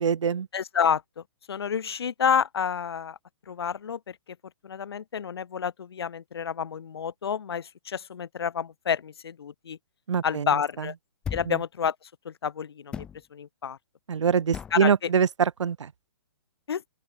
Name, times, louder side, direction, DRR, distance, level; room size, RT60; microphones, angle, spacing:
voice 1, 0.0-0.5 10.1-10.5 11.5-11.6 14.1-15.9, right 7 dB, 85° right, 1.1 m, -24 dB
voice 2, 0.5-3.2 3.5-4.2 4.6-9.8 10.2-10.9 11.3-13.0 13.3-13.8 14.7-15.1 16.7-16.8, left 7 dB, 60° left, 1.7 m, -29 dB
sound 1, 11.2-11.6 12.9-13.2 14.5-14.8, left 7 dB, 5° left, 1.2 m, -35 dB
open air
hypercardioid pair, 180°, 15 cm